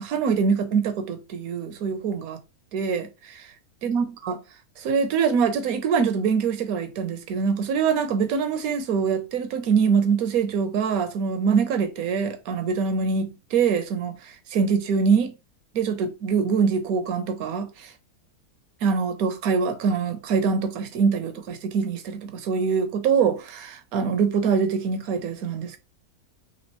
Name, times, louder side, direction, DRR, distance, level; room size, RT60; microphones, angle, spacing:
voice 1, 0.0-2.4 2.7-3.5 3.8-4.4 4.8-15.3 15.7-17.9 18.8-25.8, right 6 dB, 75° right, 1.1 m, -24 dB
4.2 x 2.8 x 2.9 m
omnidirectional pair, 1.6 m